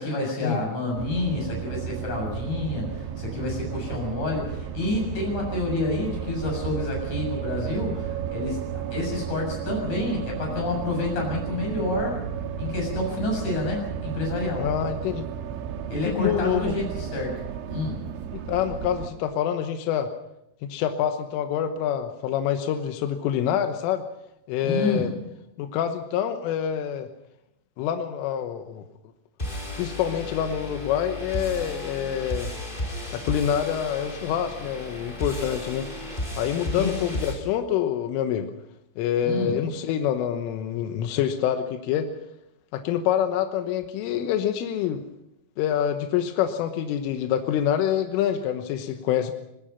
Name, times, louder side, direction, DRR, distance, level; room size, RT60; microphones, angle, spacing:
voice 1, 0.0-12.2 12.6-14.7 15.9-17.4 17.7-18.0 24.6-25.3 36.7-37.1 39.2-39.7, left 2 dB, 40° left, 0 dB, 8.4 m, -29 dB
sound 1, 1.0-19.1, right 8 dB, 75° right, 3.9 m, -33 dB
voice 2, 14.6-15.3 16.1-16.8 18.5-20.1 20.6-24.0 24.5-25.1 25.6-27.1 27.8-28.8 29.8-32.5 33.1-35.9 36.4-38.5 39.0-42.1 42.7-45.0 45.6-49.3, left 9 dB, 85° left, 6 dB, 3.7 m, -26 dB
sound 2, 29.4-37.3, left 1 dB, 10° left, 4.1 m, -34 dB
24.5 x 20.0 x 5.7 m, 0.85 s
omnidirectional pair, 5.6 m